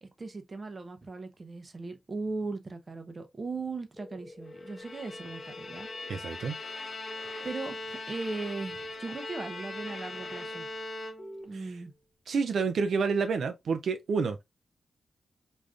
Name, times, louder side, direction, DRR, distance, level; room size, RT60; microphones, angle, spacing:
voice 1, 0.0-5.9 6.4-6.5 7.4-10.7 11.5-11.9, right 3 dB, 35° right, 0.6 m, -38 dB
sound 1, 4.0-6.2 8.4-10.8 11.2-11.4, left 1 dB, 15° left, 1.0 m, -49 dB
Bowed string instrument, 4.6-11.6, left 2 dB, 40° left, 0.5 m, -40 dB
voice 2, 6.1-6.6 12.3-14.4, right 5 dB, 75° right, 0.3 m, -28 dB
3.4 x 2.5 x 2.3 m
wide cardioid pair, 105°, 0 cm